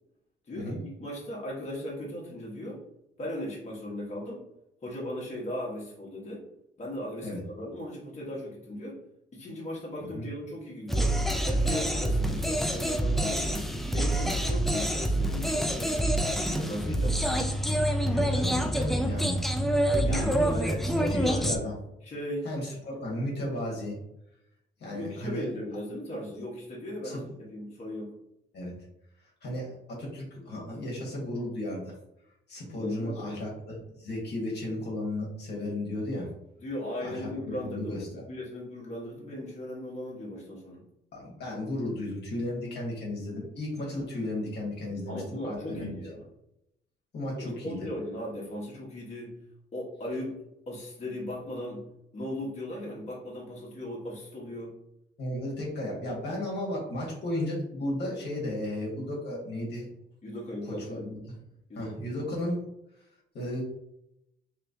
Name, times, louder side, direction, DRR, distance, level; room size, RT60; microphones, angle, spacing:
voice 1, 0.5-2.8 3.2-4.4 4.8-6.5 6.8-9.0 9.3-11.1 11.4-17.3 19.9-21.5 22.0-22.5 24.9-27.2 27.5-28.1 32.8-33.4 36.6-40.8 45.1-46.2 47.4-49.3 49.7-50.4 50.7-51.9 52.1-54.7 60.2-61.2 61.7-62.0, left 1 dB, 35° left, -4 dB, 1.1 m, -37 dB
sound 1, 10.9-21.6, right 1 dB, ahead, 0.3 m, -27 dB
voice 2, 18.1-19.3 20.0-21.7 22.4-24.0 24.8-25.4 27.0-27.2 28.5-28.8 29.4-31.9 32.5-36.3 37.0-38.2 41.1-45.9 47.1-47.8 55.2-59.9 60.9-61.4 61.8-62.7 63.3-63.6, left 1 dB, 55° left, -3 dB, 1.2 m, -34 dB
3.2 x 3.0 x 2.6 m, 0.82 s
cardioid pair, 90°, 20 cm